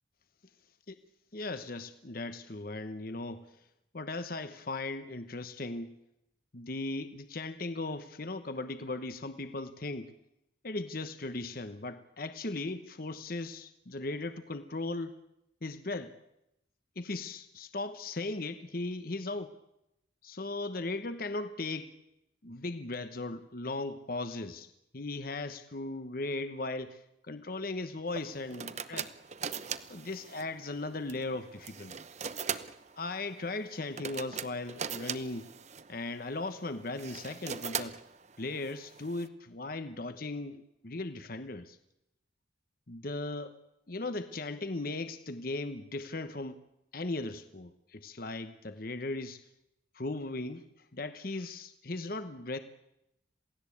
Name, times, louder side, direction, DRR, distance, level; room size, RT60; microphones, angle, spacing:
voice 1, 1.3-3.5 3.9-5.9 6.5-10.1 10.6-15.1 15.6-16.2 17.0-19.5 20.2-21.9 22.4-29.1 29.9-31.9 33.0-35.5 35.9-38.0 38.4-41.8 42.9-43.5 43.9-46.6 46.9-49.4 49.9-50.7 50.9-52.6, left 2 dB, 50° left, 10 dB, 1.1 m, -37 dB
sound 1, 28.1-39.3, right 7 dB, 35° right, 0.9 m, -41 dB
27.5 x 18.0 x 8.5 m, 0.86 s
head